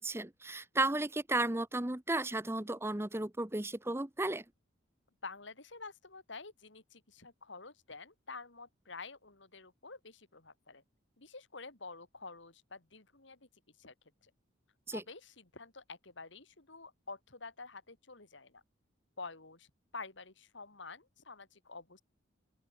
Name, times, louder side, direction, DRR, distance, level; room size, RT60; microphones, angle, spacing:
voice 1, 0.0-4.4 14.9-15.0, right 2 dB, 15° right, 0.8 m, -34 dB
voice 2, 5.2-10.8 11.2-13.5 13.8-13.9 14.2-14.3 14.9-18.6 19.2-19.7 19.9-22.0, left 4 dB, 65° left, 2.9 m, -49 dB
open air
head